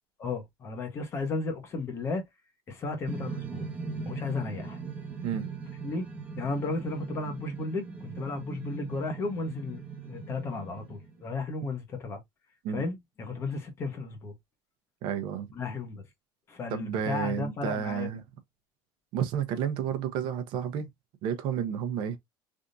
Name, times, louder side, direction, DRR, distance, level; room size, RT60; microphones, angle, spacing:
voice 1, 0.2-2.2 2.7-3.6 4.0-4.8 5.8-6.1 6.4-12.2 12.7-14.3 15.5-16.0 16.5-18.2, left 3 dB, 25° left, 0.9 m, -34 dB
sound 1, 3.0-11.5, right 5 dB, 15° right, 1.1 m, -39 dB
voice 2, 15.0-15.5 16.7-18.2 19.1-20.9 21.2-22.2, right 8 dB, 55° right, 0.7 m, -31 dB
3.5 x 2.6 x 2.5 m
cardioid pair, 180°, 10 cm